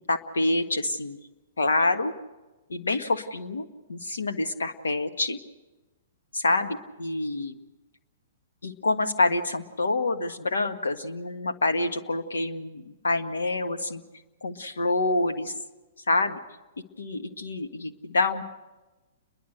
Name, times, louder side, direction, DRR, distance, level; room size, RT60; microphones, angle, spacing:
voice 1, 0.1-1.2 1.6-2.1 2.7-5.4 6.3-7.5 8.6-14.0 14.4-15.5 16.1-16.4 17.0-18.4, left 2 dB, 90° left, 7 dB, 1.6 m, -27 dB
29.5 x 11.5 x 7.9 m, 1.1 s
hypercardioid pair, 125°, 0 cm